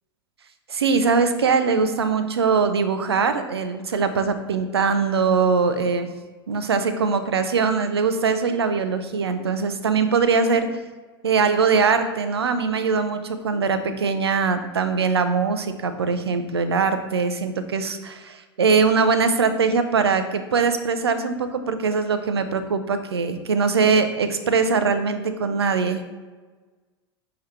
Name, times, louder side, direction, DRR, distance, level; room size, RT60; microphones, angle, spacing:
voice 1, 0.7-6.1 6.5-10.7 11.2-26.1, right 5 dB, 85° right, 10 dB, 0.4 m, -22 dB
5.5 x 2.9 x 3.3 m, 1.3 s
hypercardioid pair, 85°, 13 cm